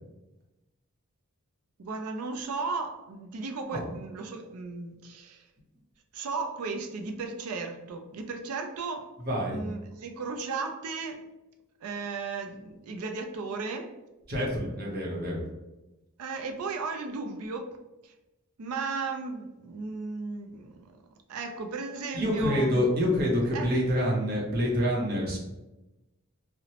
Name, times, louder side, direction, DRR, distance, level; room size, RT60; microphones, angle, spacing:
voice 1, 1.8-5.4 6.1-9.1 9.5-11.2 11.8-14.0 16.2-17.7 18.0-18.1 18.6-20.9 21.3-23.1 23.5-23.8, right 4 dB, 90° right, 0.4 m, -35 dB
voice 2, 9.2-9.6 14.3-15.4 22.1-25.4, equal, 45° right, 0.8 m, -27 dB
2.9 x 2.0 x 2.8 m
head